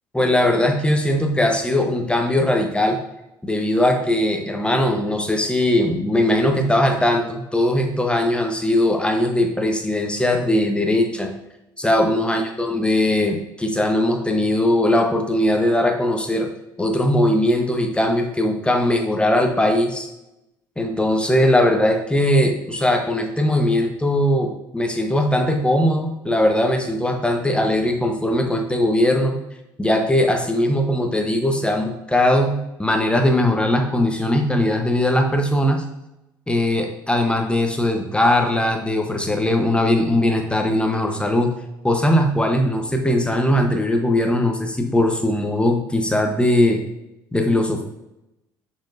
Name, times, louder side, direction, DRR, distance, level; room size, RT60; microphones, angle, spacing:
voice 1, 0.1-3.0 3.4-11.3 11.8-16.5 16.8-20.1 20.8-29.4 29.8-35.8 36.5-41.5 41.8-46.8 47.3-47.8, left 1 dB, 10° left, 4 dB, 1.2 m, -20 dB
6.4 x 6.1 x 2.7 m, 0.91 s
hypercardioid pair, 55°, 11 cm